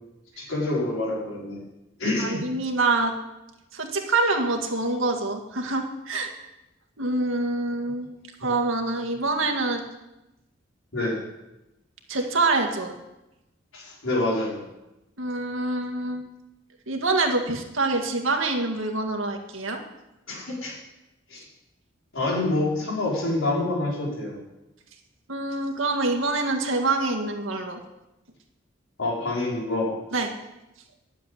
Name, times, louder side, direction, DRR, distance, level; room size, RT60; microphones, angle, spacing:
voice 1, 0.4-1.6 2.0-2.4 10.9-11.2 13.7-14.6 20.3-20.7 21.3-21.4 22.1-24.4 29.0-29.9, left 2 dB, 80° left, -4 dB, 4.9 m, -27 dB
voice 2, 2.2-3.1 3.7-6.3 7.0-8.1 8.4-9.8 12.1-12.9 15.2-16.2 16.9-19.8 25.3-27.8 30.1-30.3, right 3 dB, 85° right, 3 dB, 2.0 m, -25 dB
11.0 x 7.5 x 9.8 m, 0.96 s
head